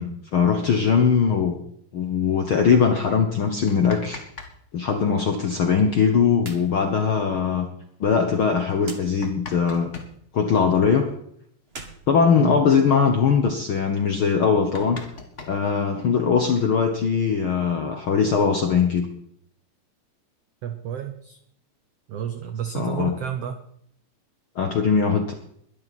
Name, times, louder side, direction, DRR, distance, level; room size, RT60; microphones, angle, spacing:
voice 1, 0.0-1.6 1.9-4.2 4.7-7.7 8.0-9.9 10.3-11.1 12.1-15.0 15.5-19.1 22.7-23.1 24.5-25.3, left 6 dB, 65° left, 5 dB, 1.3 m, -21 dB
sound 1, 3.5-4.5 4.8-4.9 6.7-6.8 7.1-7.2 7.8-7.9 8.7-10.1 11.7-11.8 12.1-12.3 12.6-13.0 13.5-13.6 14.0-14.1 14.4-16.3 17.2-18.0, left 4 dB, 45° left, 0.9 m, -41 dB
sound 2, 6.4-6.7 7.0-7.1 8.8-9.0 11.6-12.9, right 3 dB, 40° right, 0.9 m, -41 dB
voice 2, 20.6-21.4 22.1-23.6, right 9 dB, 75° right, 8 dB, 1.4 m, -31 dB
21.0 x 12.5 x 4.2 m, 0.71 s
omnidirectional pair, 4.0 m